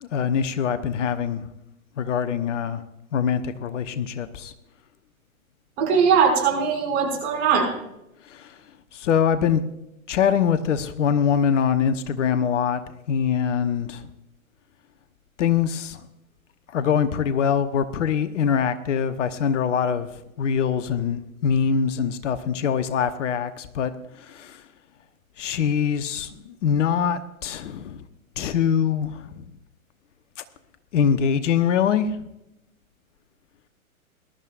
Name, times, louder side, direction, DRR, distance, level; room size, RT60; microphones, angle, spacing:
voice 1, 0.0-1.4 2.0-2.8 3.1-4.5 8.3-8.5 8.9-9.6 10.1-12.8 13.1-14.1 15.4-16.1 16.7-20.1 20.4-23.9 24.2-24.6 25.4-28.0 28.4-29.4 30.9-32.1, left 7 dB, 55° left, 10 dB, 1.2 m, -23 dB
voice 2, 5.8-7.7, right 6 dB, 50° right, 1 dB, 6.2 m, -20 dB
21.5 x 12.5 x 2.6 m, 0.85 s
figure-of-eight pair, 115°, 43 cm